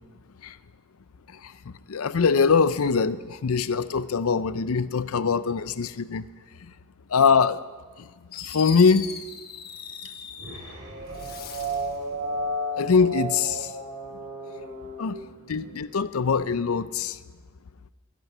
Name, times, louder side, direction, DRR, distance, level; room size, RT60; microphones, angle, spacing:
voice 1, 1.4-6.2 7.1-7.6 8.0-8.1 8.4-9.0 12.8-13.7 15.0-15.1 15.5-17.2, left 5 dB, 80° left, 15 dB, 0.6 m, -23 dB
Fireworks, 7.9-8.0 8.3-10.7 11.1-11.9, left 7 dB, 45° left, 1.2 m, -39 dB
sound 1, 10.4-15.9, right 1 dB, 90° right, 4.0 m, -34 dB
21.5 x 11.0 x 5.6 m, 1.4 s
head